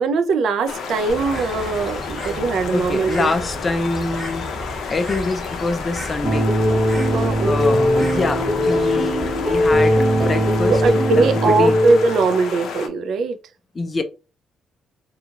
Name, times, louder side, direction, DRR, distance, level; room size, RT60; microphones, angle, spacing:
voice 1, 0.0-3.4 7.1-7.8 10.7-13.4, right 4 dB, 65° right, 0.4 m, -20 dB
sound 1, 0.7-12.9, left 6 dB, 75° left, 0.5 m, -31 dB
Bird, 1.1-10.9, equal, 5° right, 1.3 m, -34 dB
voice 2, 2.7-6.5 7.4-10.8 11.2-11.8 13.7-14.0, left 3 dB, 25° left, 0.4 m, -25 dB
sound 2, 6.2-12.3, equal, 25° right, 0.9 m, -19 dB
2.8 x 2.3 x 2.8 m
cardioid pair, 140°, 0 cm